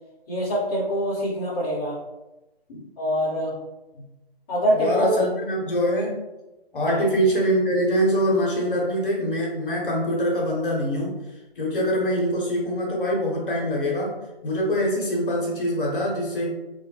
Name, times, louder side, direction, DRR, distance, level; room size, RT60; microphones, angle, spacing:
voice 1, 0.3-2.0 3.0-3.6 4.5-5.1 6.9-7.0, equal, 25° left, -9 dB, 0.7 m, -24 dB
voice 2, 4.7-6.1 6.7-11.1 11.6-14.1 14.4-16.5, equal, 60° left, -3 dB, 0.9 m, -24 dB
2.2 x 2.0 x 2.8 m, 1.0 s
figure-of-eight pair, 140°, 31 cm